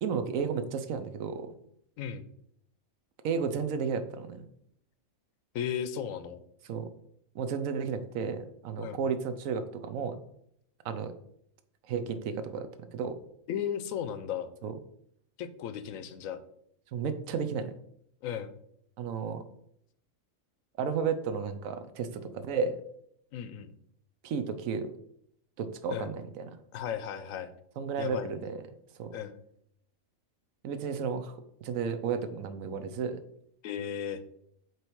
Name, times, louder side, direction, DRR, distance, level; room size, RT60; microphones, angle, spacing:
voice 1, 0.0-1.5 3.2-4.4 6.7-6.9 7.3-10.2 10.8-11.1 11.9-13.2 14.6-14.7 16.9-17.7 19.0-19.4 20.8-22.8 24.2-24.9 25.6-26.5 27.8-28.6 29.0-29.1 30.6-33.2, right 6 dB, 80° right, 10 dB, 1.1 m, -33 dB
voice 2, 2.0-2.3 5.5-6.4 8.8-9.0 13.5-14.5 15.4-16.4 18.2-18.5 23.3-23.7 25.9-26.1 26.7-27.5 28.0-28.4 29.1-29.4 33.6-34.2, left 9 dB, 80° left, 12 dB, 1.0 m, -35 dB
7.8 x 3.1 x 4.6 m, 0.71 s
omnidirectional pair, 1.4 m